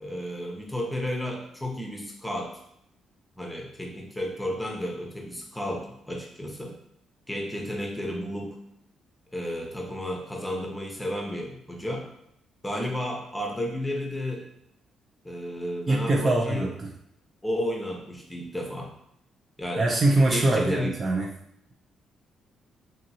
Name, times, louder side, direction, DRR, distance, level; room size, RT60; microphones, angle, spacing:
voice 1, 0.0-2.6 3.4-6.8 7.3-8.6 9.3-12.1 12.6-14.5 15.2-16.7 17.4-18.9 19.6-19.9 20.2-20.9, left 1 dB, 5° left, 0 dB, 0.7 m, -32 dB
voice 2, 15.9-16.9 19.8-21.3, right 2 dB, 35° right, 1 dB, 0.4 m, -23 dB
2.8 x 2.7 x 2.7 m, 0.73 s
cardioid pair, 90°, 0 cm